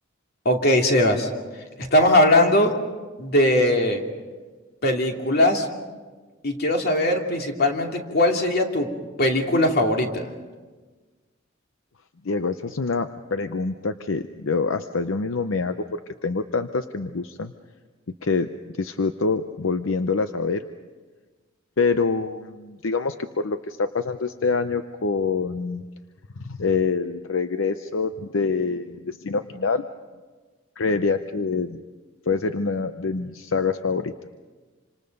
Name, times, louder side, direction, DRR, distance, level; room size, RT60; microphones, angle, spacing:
voice 1, 0.4-1.3 1.9-2.7 3.2-4.0 4.8-5.7 6.4-8.9 9.2-10.3, left 1 dB, 50° left, 2 dB, 2.6 m, -20 dB
voice 2, 12.2-15.8 16.2-17.5 18.2-18.5 18.8-20.6 21.8-25.8 26.4-29.9 30.8-31.8 32.3-34.3, left 4 dB, 75° left, 9 dB, 0.7 m, -25 dB
27.5 x 26.0 x 5.3 m, 1.4 s
head